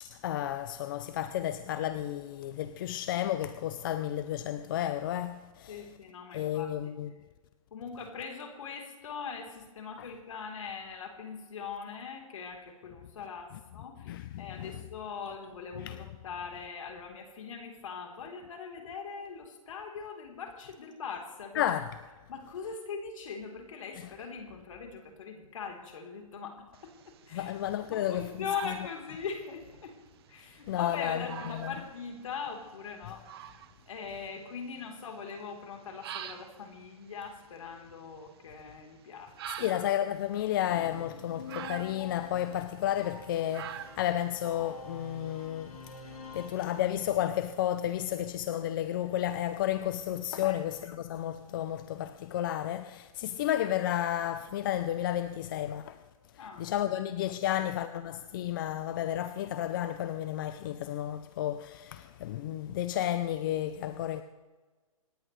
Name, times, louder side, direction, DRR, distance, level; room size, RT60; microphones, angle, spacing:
voice 1, 0.0-5.8 6.3-7.1 10.0-10.1 14.1-14.7 15.9-16.0 21.5-21.9 24.0-24.1 27.3-28.4 30.7-31.3 31.5-31.7 39.6-45.8 46.3-56.0 56.6-64.2, left 12 dB, 35° left, 0.6 m, -32 dB
voice 2, 5.7-6.7 7.7-21.6 22.3-27.5 27.9-30.0 30.3-33.5 33.9-39.9 50.4-50.6 56.4-56.7 57.4-57.7, left 6 dB, 65° left, 3.7 m, -41 dB
sound 1, 26.7-45.4, right 10 dB, 45° right, 1.0 m, -48 dB
sound 2, 40.7-47.5, left 4 dB, 80° left, 3.2 m, -48 dB
27.0 x 10.5 x 3.3 m
hypercardioid pair, 150°, 18 cm